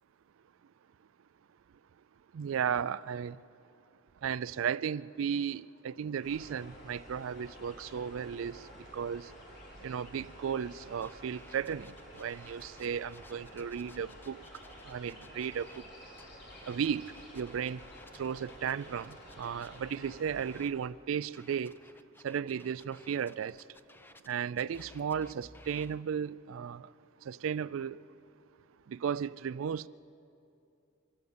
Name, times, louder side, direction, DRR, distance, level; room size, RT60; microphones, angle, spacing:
voice 1, 2.3-3.4 4.2-8.6 8.9-9.3 9.8-11.9 12.2-14.4 14.9-15.7 16.7-17.0 17.3-17.8 18.2-21.7 22.2-23.6 24.3-26.8 27.3-28.0 28.9-29.9, right 7 dB, 85° right, 0.4 m, -34 dB
sound 1, 6.2-20.7, equal, 60° left, 4.5 m, -51 dB
sound 2, 11.0-15.8 16.1-20.7 21.3-26.0, left 2 dB, 10° left, 0.5 m, -57 dB
24.5 x 13.5 x 8.0 m
head